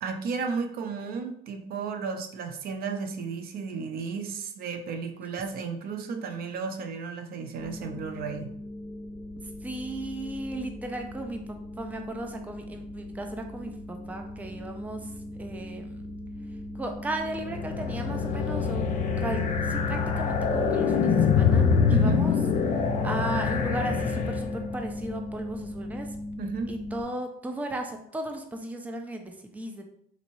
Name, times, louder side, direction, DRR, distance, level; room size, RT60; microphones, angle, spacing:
voice 1, 0.0-8.5 21.9-22.2 26.4-26.8, right 5 dB, 65° right, 6 dB, 0.5 m, -33 dB
voice 2, 5.9-6.4 9.6-15.1 15.4-16.0 16.7-18.9 19.2-22.3 23.0-26.1 26.7-29.8, right 1 dB, 10° right, 4 dB, 0.4 m, -36 dB
sound 1, 7.6-27.0, left 1 dB, 15° left, 1.0 m, -38 dB
sound 2, 17.3-24.8, left 6 dB, 50° left, 0.5 m, -25 dB
3.9 x 2.9 x 2.6 m, 0.69 s
cardioid pair, 110°, 17 cm